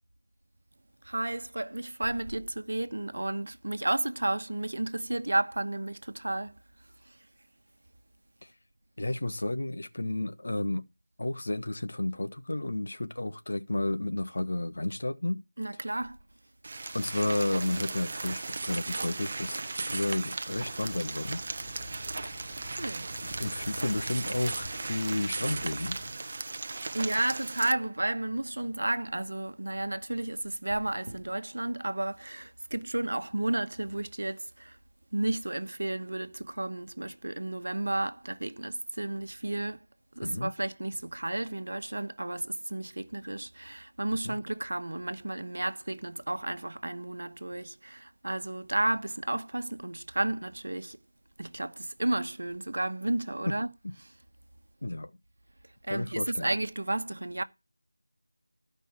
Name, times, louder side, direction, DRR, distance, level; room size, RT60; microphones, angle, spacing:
voice 1, 1.0-6.6 7.1-7.2 15.6-16.2 22.8-23.1 26.7-34.8 35.1-39.8 40.1-51.0 51.4-53.7 55.8-57.4, right 1 dB, 65° right, 1.1 m, -32 dB
voice 2, 9.0-10.9 11.2-15.4 16.9-21.4 22.2-22.3 23.4-26.0 40.2-40.5 44.2-44.3 53.5-53.6 53.8-53.9 54.8-55.1 55.9-56.5, left 1 dB, 60° left, 1.2 m, -32 dB
sound 1, 16.6-27.7, right 3 dB, 35° right, 0.6 m, -36 dB
sound 2, 20.5-26.1, equal, ahead, 2.1 m, -47 dB
14.0 x 5.4 x 6.0 m
figure-of-eight pair, 170°, 0 cm